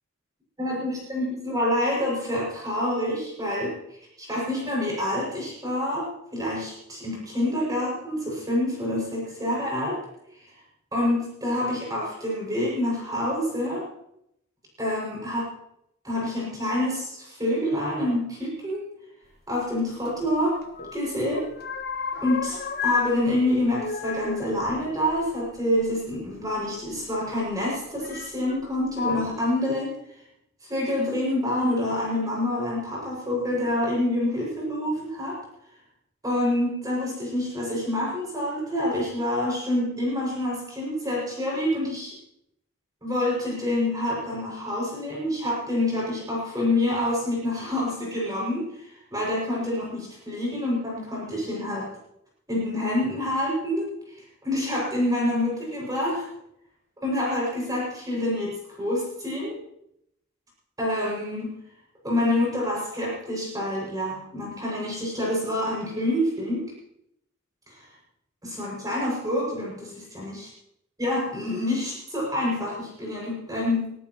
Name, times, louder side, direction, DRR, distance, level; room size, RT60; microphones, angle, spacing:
voice 1, 0.6-3.7 4.2-10.0 10.9-13.8 14.8-15.5 16.0-18.8 19.5-20.6 20.9-21.5 22.2-29.9 30.6-35.4 36.2-42.1 43.0-48.8 49.1-51.9 52.5-53.9 54.4-56.3 57.0-59.6 60.8-61.5 62.0-66.7 68.4-70.5 71.0-73.9, left 1 dB, 20° right, -4 dB, 6.9 m, -27 dB
sound 1, 20.1-21.0 21.2-23.1 23.4-25.9 26.9-27.0 28.0-28.6 28.9-29.2, left 5 dB, 50° left, 1.3 m, -32 dB
24.0 x 15.0 x 3.2 m, 0.78 s
head